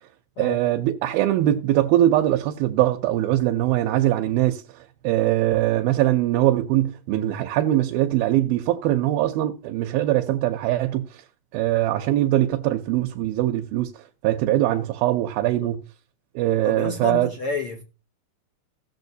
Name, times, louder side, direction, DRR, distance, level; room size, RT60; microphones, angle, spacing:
voice 1, 0.4-4.6 5.0-11.1 11.5-13.9 14.2-15.8 16.4-17.3, right 14 dB, 85° right, 2.6 m, -22 dB
voice 2, 16.6-17.8, left 4 dB, 80° left, 1.2 m, -30 dB
18.0 x 7.0 x 2.7 m
omnidirectional pair, 4.1 m